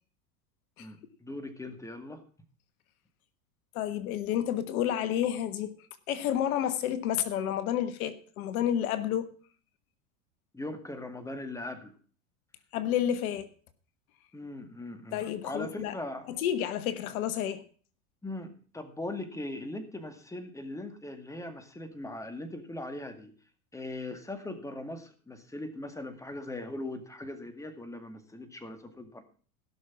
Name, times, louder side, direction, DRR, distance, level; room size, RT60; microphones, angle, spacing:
voice 1, 0.8-2.2 10.5-11.9 14.3-16.3 18.2-23.3 23.7-29.2, left 2 dB, 5° left, 2.1 m, -40 dB
voice 2, 3.7-5.7 6.1-9.3 12.7-13.5 15.1-15.9 16.3-17.6, left 10 dB, 65° left, 1.4 m, -30 dB
16.5 x 6.4 x 5.8 m
hypercardioid pair, 95°, 45 cm